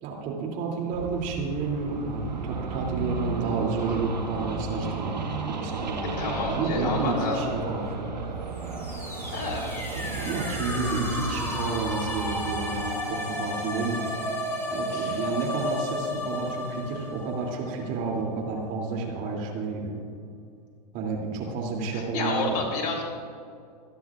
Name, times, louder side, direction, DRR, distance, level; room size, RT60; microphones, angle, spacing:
voice 1, 0.0-7.9 9.9-14.1 14.7-20.0 20.9-22.5, right 4 dB, 40° right, -1 dB, 3.0 m, -30 dB
sound 1, 0.9-13.0, right 4 dB, 85° right, 1.8 m, -34 dB
voice 2, 6.2-7.5 9.3-9.7 14.9-15.2 21.9-23.0, left 3 dB, 40° left, -1 dB, 3.7 m, -30 dB
sound 2, 8.5-18.3, left 1 dB, 10° left, 2.8 m, -33 dB
26.0 x 10.5 x 2.5 m, 2.3 s
figure-of-eight pair, 105°, 21 cm